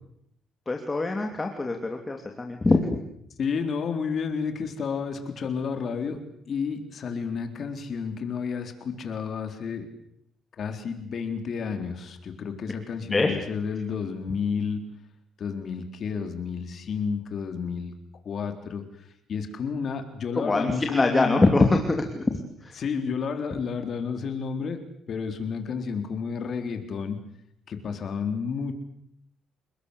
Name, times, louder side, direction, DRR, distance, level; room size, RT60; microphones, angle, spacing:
voice 1, 0.7-2.8 13.1-13.4 20.3-22.2 22.6-22.8, left 3 dB, 20° left, 3 dB, 2.9 m, -23 dB
voice 2, 3.4-6.2 6.5-9.9 10.6-14.8 15.4-17.9 18.2-18.8 19.3-21.5 22.8-24.8 25.1-27.2 27.7-28.7, left 6 dB, 50° left, 7 dB, 4.0 m, -31 dB
29.5 x 20.0 x 8.3 m, 0.72 s
cardioid pair, 115°, 0 cm